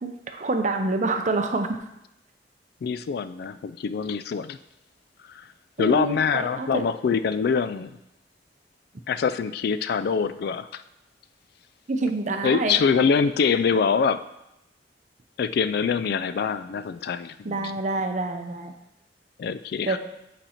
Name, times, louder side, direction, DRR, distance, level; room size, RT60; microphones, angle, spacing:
voice 1, 0.0-1.7 5.8-6.8 11.9-12.8 17.4-18.7 19.9-20.0, right 2 dB, 45° right, 6 dB, 0.6 m, -27 dB
voice 2, 2.8-4.6 5.3-5.4 5.8-8.0 9.1-10.8 12.4-14.2 15.4-17.8 19.4-20.0, left 6 dB, 60° left, 13 dB, 0.3 m, -24 dB
8.0 x 4.3 x 4.3 m, 0.87 s
head